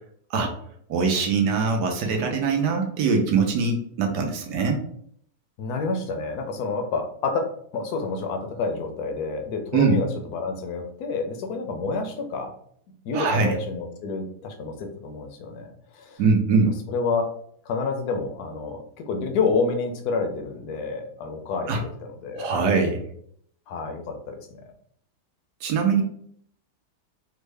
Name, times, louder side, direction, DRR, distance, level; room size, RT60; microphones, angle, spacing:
voice 1, 0.9-4.8 9.7-10.0 13.1-13.5 16.2-16.7 21.7-21.8 22.4-23.0 25.6-26.0, right 4 dB, 75° right, 3 dB, 1.2 m, -22 dB
voice 2, 5.6-7.5 7.7-12.5 13.0-16.2 16.9-17.3 17.7-21.9 22.2-22.6 23.7-24.4, left 4 dB, 70° left, 5 dB, 1.0 m, -28 dB
3.6 x 2.2 x 3.2 m, 0.65 s
omnidirectional pair, 1.9 m